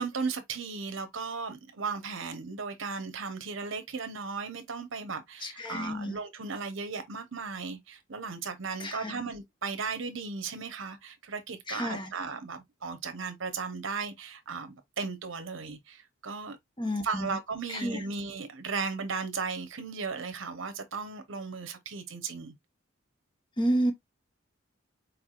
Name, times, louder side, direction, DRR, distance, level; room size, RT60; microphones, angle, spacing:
voice 1, 0.0-16.6 17.0-22.5, right 4 dB, 75° right, 0.9 m, -36 dB
voice 2, 5.4-6.1 8.8-9.2 11.7-12.1 16.8-17.3 17.7-18.0 23.6-23.9, equal, 25° left, 1.1 m, -30 dB
4.7 x 4.3 x 2.4 m
head